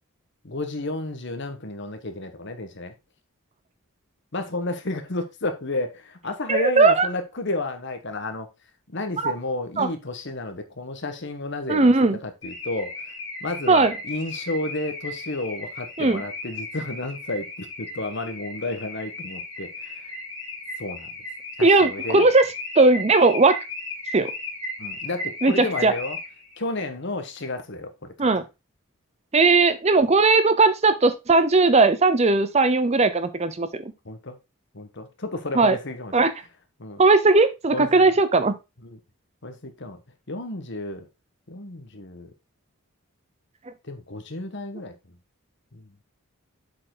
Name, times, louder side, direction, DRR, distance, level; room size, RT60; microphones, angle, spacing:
voice 1, 0.4-2.9 4.3-8.5 8.9-11.9 12.2-13.0 13.4-20.1 20.8-21.1 21.6-22.3 24.8-26.2 26.6-28.3 30.0-30.1 34.0-34.4 34.7-36.1 36.8-37.0 37.7-38.1 38.8-39.0 39.4-40.0 40.3-41.1 41.5-42.3 43.8-44.9 45.7-45.9, left 2 dB, 55° left, 1.3 m, -32 dB
voice 2, 6.5-7.1 9.2-9.3 9.8-9.9 11.7-12.2 13.7-13.9 16.0-16.2 21.6-22.4 22.8-23.6 24.1-24.3 25.4-25.9 28.2-28.4 29.3-33.9 35.5-35.8 36.1-36.3 37.0-38.5, right 3 dB, 30° right, 0.6 m, -18 dB
Car / Alarm, 12.4-26.6, left 2 dB, 20° left, 2.3 m, -36 dB
7.4 x 4.7 x 3.8 m
head